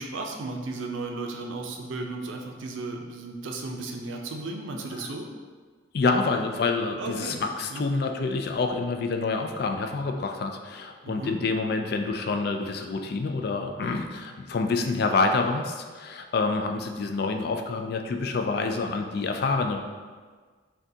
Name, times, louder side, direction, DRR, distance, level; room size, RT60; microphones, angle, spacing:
voice 1, 0.0-5.3 7.0-7.4 7.7-7.9 11.1-11.4, right 2 dB, 75° right, 2 dB, 0.5 m, -34 dB
voice 2, 5.9-19.8, left 3 dB, 50° left, 4 dB, 0.3 m, -27 dB
6.1 x 2.3 x 2.7 m, 1.5 s
head